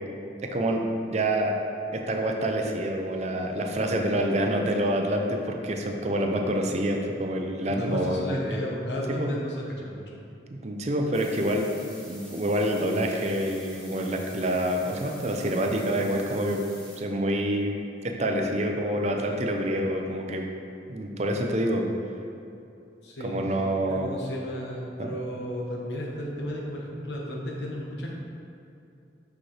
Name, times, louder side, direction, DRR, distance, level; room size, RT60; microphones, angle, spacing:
voice 1, 0.4-1.6 1.9-8.2 9.1-9.3 10.6-11.7 12.1-16.6 17.0-17.8 18.0-20.5 20.9-21.9 23.2-24.1 25.0-25.1, right 1 dB, 40° right, 2 dB, 0.6 m, -27 dB
voice 2, 7.7-10.0 23.0-23.6 23.9-28.1, equal, 75° left, -3 dB, 1.2 m, -33 dB
sound 1, 11.1-17.0, right 1 dB, 5° left, 1.4 m, -47 dB
6.3 x 6.1 x 3.3 m, 2.7 s
head